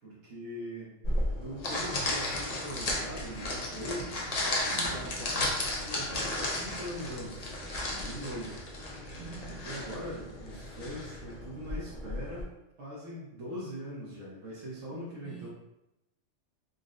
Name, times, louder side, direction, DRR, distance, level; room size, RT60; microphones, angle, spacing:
voice 1, 0.0-0.9 1.3-4.2 4.6-7.6 7.9-8.6 9.6-12.5 12.8-15.5, equal, 75° right, -6 dB, 1.2 m, -41 dB
sound 1, 1.0-12.4, left 1 dB, 50° left, 0.5 m, -34 dB
voice 2, 4.7-5.2 9.1-9.7 14.9-15.5, right 5 dB, 25° right, -7 dB, 0.5 m, -47 dB
3.8 x 2.0 x 2.4 m, 0.91 s
omnidirectional pair, 1.3 m